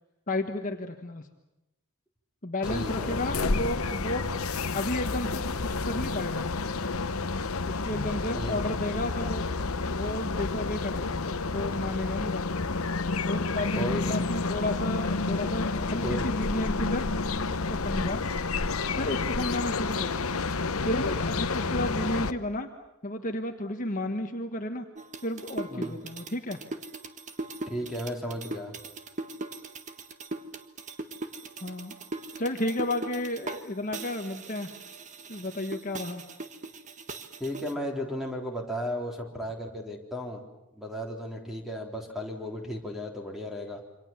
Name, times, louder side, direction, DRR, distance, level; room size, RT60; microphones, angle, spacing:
voice 1, 0.3-1.2 2.4-4.2 4.7-6.5 7.7-9.5 9.8-12.7 13.3-13.8 14.1-17.1 17.5-18.2 18.9-20.3 20.8-22.7 23.0-24.8 25.2-26.6 31.6-31.9 32.4-34.7 35.3-36.2, left 1 dB, 35° left, 5 dB, 1.5 m, -32 dB
sound 1, 2.6-22.3, left 3 dB, 75° left, 1.0 m, -30 dB
voice 2, 2.6-3.5 8.3-8.6 13.7-14.3 15.9-16.3 25.7-26.0 27.7-28.7 37.4-40.4 40.7-43.8, equal, ahead, 1 dB, 3.8 m, -35 dB
sound 2, 25.0-33.6 33.9-37.7, right 2 dB, 35° right, 1.6 m, -39 dB
27.5 x 26.0 x 7.4 m, 0.93 s
head